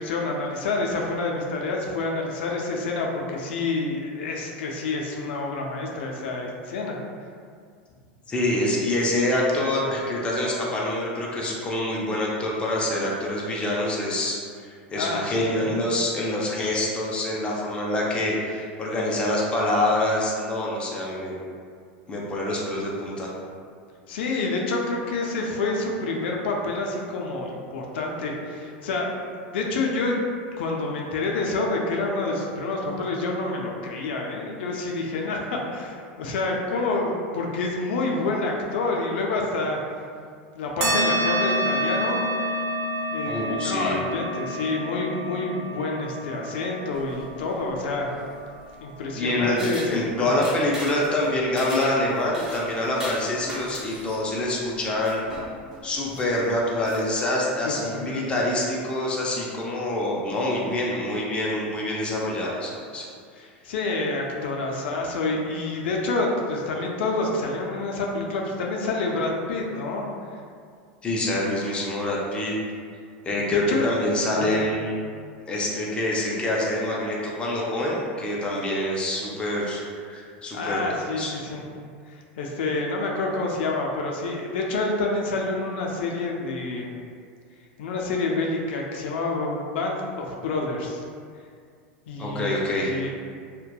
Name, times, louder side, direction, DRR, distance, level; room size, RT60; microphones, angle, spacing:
voice 1, 0.0-7.0 15.0-15.5 24.1-30.2 30.6-39.8 40.5-42.2 43.1-48.2 48.8-50.4 57.6-58.3 63.3-70.1 70.3-70.4 73.5-73.9 74.3-74.6 80.5-81.6 82.1-87.0 87.8-91.0 92.1-93.3, left 3 dB, 80° left, 0 dB, 0.4 m, -28 dB
voice 2, 8.3-21.4 22.1-23.3 43.2-44.0 49.2-49.6 49.9-55.2 55.8-63.1 71.0-72.5 73.2-74.9 75.5-80.8 81.2-81.3 92.2-92.9, left 1 dB, 20° left, -4 dB, 0.4 m, -26 dB
sound 1, 40.8-49.7, right 1 dB, 60° right, 0.7 m, -29 dB
sound 2, 46.9-57.0, equal, 10° right, 0.7 m, -41 dB
2.7 x 2.1 x 2.2 m, 2.2 s
supercardioid pair, 125°, 6 cm